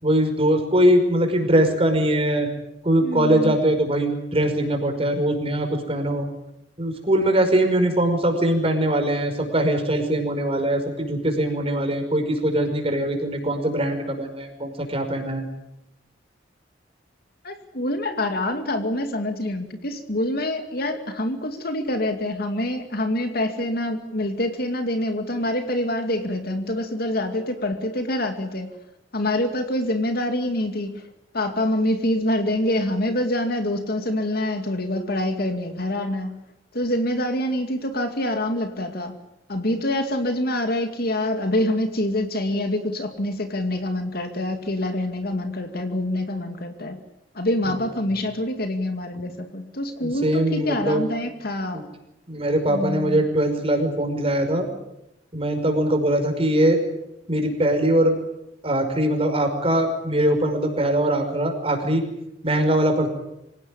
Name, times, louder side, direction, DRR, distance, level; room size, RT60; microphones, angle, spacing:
voice 1, 0.0-2.5 2.8-6.3 6.8-15.4 49.1-49.2 50.0-51.0 51.7-51.8 52.3-54.7 55.3-56.8 57.3-58.1 58.6-62.0 62.4-63.1, right 1 dB, 30° right, 5 dB, 5.4 m, -21 dB
voice 2, 3.0-3.6 17.4-28.7 29.1-31.1 31.3-36.3 36.7-39.2 39.5-47.0 47.3-51.8 52.7-53.3, left 1 dB, 55° left, 6 dB, 2.4 m, -26 dB
26.0 x 17.5 x 10.0 m, 0.86 s
head